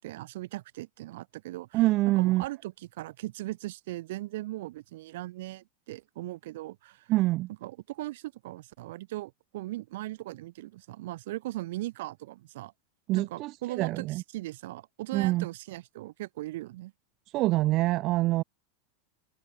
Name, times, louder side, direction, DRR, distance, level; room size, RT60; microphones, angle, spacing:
voice 1, 0.0-1.9 2.2-7.1 7.6-12.7 13.1-16.9, right 17 dB, 70° right, 5.6 m, -39 dB
voice 2, 1.7-2.4 7.1-7.5 13.1-13.5 13.8-14.2 15.1-15.5 17.3-18.4, right 18 dB, 40° right, 0.4 m, -25 dB
open air
supercardioid pair, 140°, 0 cm